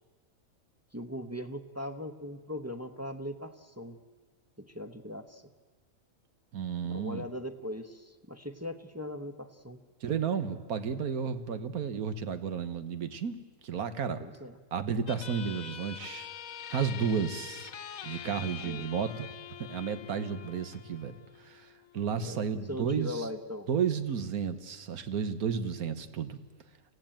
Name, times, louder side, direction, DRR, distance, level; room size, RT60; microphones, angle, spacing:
voice 1, 0.9-4.0 4.6-5.4 6.8-9.8 14.2-14.6 18.6-18.9 22.2-23.7, left 1 dB, 15° right, 5 dB, 0.7 m, -40 dB
voice 2, 6.5-7.2 10.0-13.4 13.6-14.2 14.7-16.3 16.7-17.7 18.0-19.3 19.7-21.7 21.9-23.2 23.7-26.4, right 6 dB, 80° right, 11 dB, 1.6 m, -32 dB
sound 1, 15.1-22.1, left 9 dB, 70° left, 1.3 m, -44 dB
25.5 x 15.5 x 9.0 m, 1.4 s
omnidirectional pair, 1.5 m